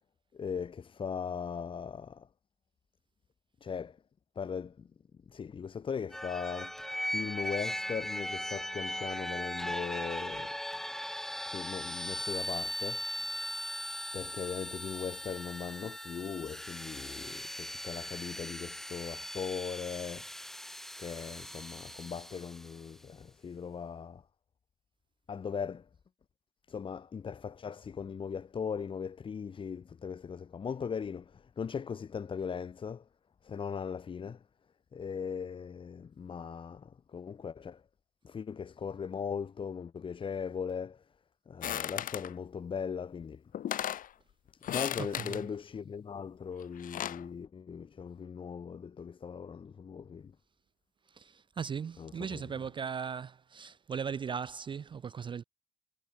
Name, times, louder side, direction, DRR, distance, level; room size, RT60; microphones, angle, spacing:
voice 1, 0.3-2.3 3.6-3.9 4.4-4.7 5.3-6.7 7.1-10.5 11.5-13.0 14.1-20.3 21.0-24.2 25.3-25.8 26.7-31.2 31.6-33.0 33.4-34.4 34.9-37.8 38.2-41.0 41.5-43.4 44.7-50.3 52.0-52.4, left 6 dB, 30° left, 0.9 m, -39 dB
sound 1, 6.1-22.8, equal, ahead, 2.1 m, -39 dB
sound 2, 41.6-42.3 43.2-43.3 43.5-44.1 44.6-45.4 46.6-47.2, left 11 dB, 55° left, 1.1 m, -36 dB
voice 2, 45.0-45.5 51.1-55.4, right 6 dB, 30° right, 0.5 m, -38 dB
cardioid pair, 110°, 17 cm